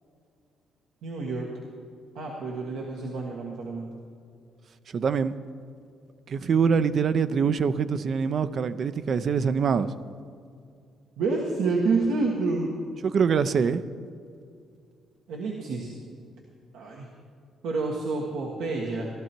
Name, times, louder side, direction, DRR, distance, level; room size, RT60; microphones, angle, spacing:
voice 1, 1.0-1.5 2.1-3.9 11.2-12.7 15.3-15.9 16.7-17.1 17.6-19.1, right 3 dB, 85° right, -2 dB, 1.6 m, -28 dB
voice 2, 4.9-5.3 6.3-9.9 13.0-13.8, right 6 dB, 55° right, 12 dB, 0.6 m, -24 dB
16.0 x 12.5 x 4.5 m, 2.3 s
cardioid pair, 90°, 0 cm